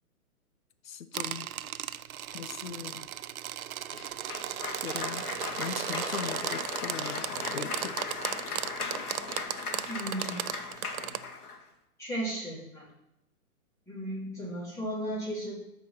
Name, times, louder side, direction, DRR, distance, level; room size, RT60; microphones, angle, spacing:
voice 1, 0.8-1.5 2.3-3.1 4.8-8.0, left 8 dB, 65° left, 12 dB, 0.9 m, -40 dB
sound 1, 1.1-11.2, right 11 dB, 70° right, 0.6 m, -36 dB
Cheering / Applause, 3.9-11.6, left 4 dB, 80° left, 2.2 m, -37 dB
voice 2, 9.9-10.4 12.0-12.9 13.9-15.5, right 1 dB, 5° left, -7 dB, 3.0 m, -35 dB
12.5 x 4.7 x 5.8 m, 0.88 s
hypercardioid pair, 155°, 44 cm